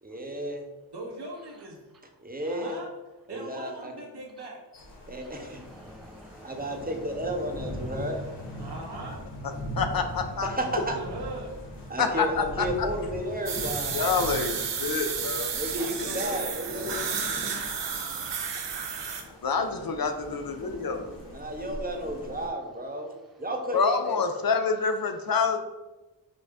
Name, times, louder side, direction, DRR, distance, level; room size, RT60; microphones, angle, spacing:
voice 1, 0.0-0.6 2.2-2.8 3.3-3.9 5.1-5.6 6.4-8.2 10.4-11.0 11.9-13.9 15.5-17.0 21.3-24.2, right 1 dB, 20° right, 0.9 m, -33 dB
voice 2, 0.9-1.8 2.3-2.9 3.3-4.6 8.6-9.2 10.9-11.5 15.7-16.5, right 1 dB, 70° right, 1.3 m, -39 dB
sound 1, 4.7-22.5, equal, 75° left, 1.2 m, -41 dB
voice 3, 5.2-8.9 17.3-19.4 21.1-21.2, equal, ahead, 0.3 m, -52 dB
voice 4, 9.8-10.5 12.0-12.9 13.9-15.5 19.4-21.1 23.7-25.6, left 5 dB, 55° left, 0.6 m, -27 dB
sound 2, 13.5-19.2, right 6 dB, 85° right, 0.7 m, -32 dB
5.4 x 2.7 x 3.5 m
cardioid pair, 45°, 42 cm